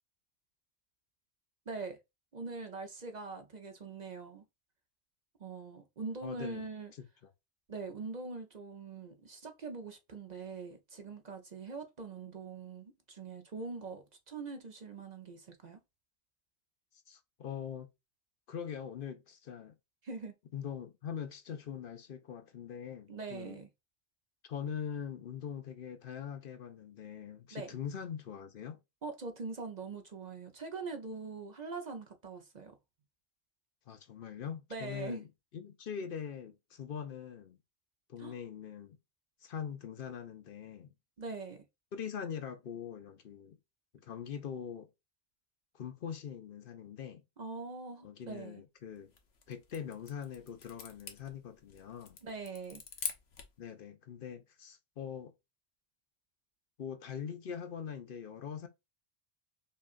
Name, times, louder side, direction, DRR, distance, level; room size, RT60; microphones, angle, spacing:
voice 1, 1.7-2.0 2.3-4.4 5.4-6.9 7.7-15.8 20.0-20.3 23.1-23.7 27.5-27.7 29.0-32.8 34.7-35.2 38.2-38.3 41.2-41.6 47.4-48.6 52.2-52.8, right 4 dB, 45° right, 0.8 m, -43 dB
voice 2, 6.2-6.6 7.0-7.3 17.1-17.9 18.5-19.7 20.5-23.6 24.4-28.8 33.9-35.3 35.5-37.6 38.1-39.0 39.4-40.9 41.9-43.6 43.9-44.9 45.7-47.2 48.0-49.1 49.5-52.2 53.6-55.3 56.8-58.7, left 8 dB, 60° left, 0.8 m, -42 dB
sound 1, 49.0-53.6, left 6 dB, 75° left, 1.1 m, -45 dB
5.5 x 2.4 x 2.4 m
omnidirectional pair, 1.1 m